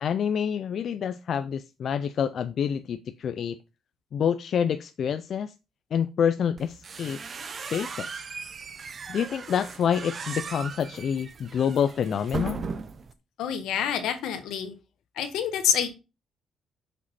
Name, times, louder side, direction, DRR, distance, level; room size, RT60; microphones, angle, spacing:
voice 1, 0.0-3.6 4.1-5.5 5.9-7.2 7.7-8.2 9.1-12.7, left 8 dB, 60° left, 0.4 m, -27 dB
sound 1, 6.6-13.1, right 5 dB, 45° right, 0.7 m, -37 dB
voice 2, 13.4-14.7 15.2-15.9, left 8 dB, 85° left, 1.3 m, -27 dB
5.7 x 5.1 x 4.1 m
cardioid pair, 90°, 0 cm